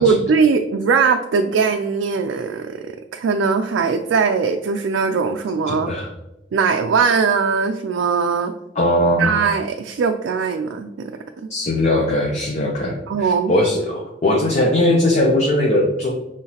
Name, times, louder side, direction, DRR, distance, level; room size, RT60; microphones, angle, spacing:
voice 1, 0.0-5.9 6.5-8.5 9.2-11.1 11.4-11.5 13.1-13.5, right 5 dB, 80° right, 5 dB, 0.3 m, -20 dB
voice 2, 5.7-6.1 8.7-9.3 11.5-16.1, left 1 dB, 40° left, -1 dB, 0.6 m, -19 dB
5.6 x 3.2 x 2.9 m, 0.92 s
head